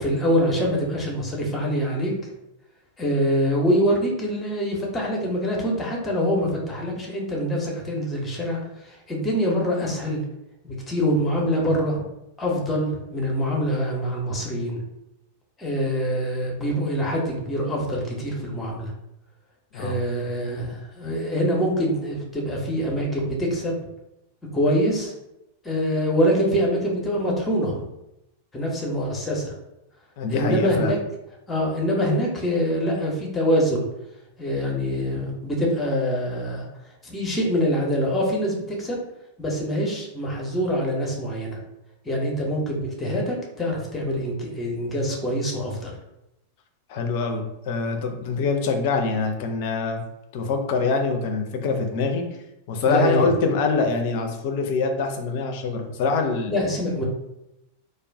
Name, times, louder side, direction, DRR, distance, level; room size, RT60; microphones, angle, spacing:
voice 1, 0.0-2.1 3.0-10.2 10.6-12.0 12.4-14.8 15.6-18.9 19.7-23.7 24.5-25.1 25.6-27.8 28.5-29.5 30.3-31.0 31.5-33.9 34.4-36.7 37.0-39.0 39.4-41.6 42.0-45.9 52.9-53.3 56.5-57.0, equal, 15° left, -1 dB, 0.8 m, -24 dB
voice 2, 30.2-30.9 46.9-50.0 50.3-52.2 52.7-56.5, left 4 dB, 50° left, 5 dB, 0.4 m, -24 dB
2.3 x 2.3 x 3.4 m, 0.88 s
figure-of-eight pair, 90°, 0 cm